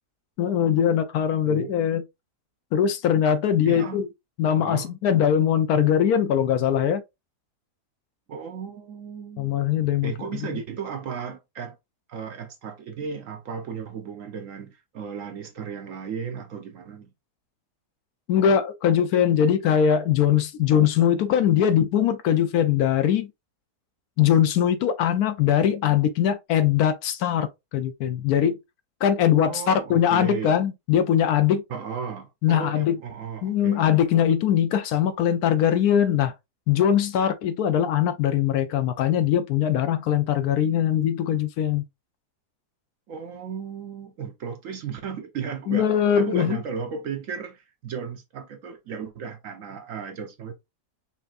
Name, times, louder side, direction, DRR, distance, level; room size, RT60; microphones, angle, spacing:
voice 1, 0.4-2.0 2.7-4.1 4.4-7.0 9.4-10.1 18.3-23.3 24.2-28.6 29.0-31.6 32.4-32.9 33.4-36.3 36.7-41.8 45.7-46.6, left 9 dB, 75° left, 1.0 m, -21 dB
voice 2, 1.5-1.8 3.6-4.0 4.6-4.9 8.3-9.6 10.0-11.8 12.1-17.1 29.4-30.6 31.7-33.9 43.1-50.5, right 6 dB, 65° right, 0.9 m, -35 dB
5.5 x 2.6 x 2.4 m
omnidirectional pair, 1.7 m